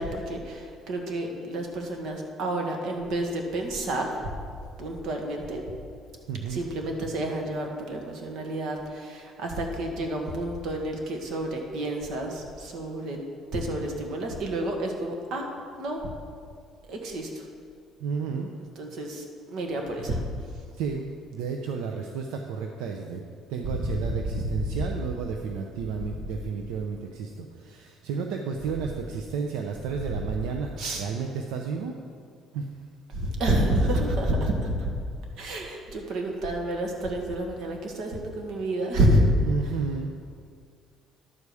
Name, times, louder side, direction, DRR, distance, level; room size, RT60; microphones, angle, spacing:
voice 1, 0.0-4.1 4.8-5.6 6.5-13.2 13.5-15.5 15.8-16.0 16.9-17.4 18.8-20.2 24.6-24.8 30.8-31.0 33.1-34.9 35.4-39.3, right 1 dB, 65° right, 2 dB, 1.6 m, -29 dB
voice 2, 6.3-6.6 18.0-18.5 20.7-31.9 32.5-32.7 34.5-34.6 39.4-40.1, right 5 dB, 90° right, 3 dB, 0.6 m, -32 dB
11.0 x 4.8 x 6.9 m, 2.2 s
cardioid pair, 115°, 0 cm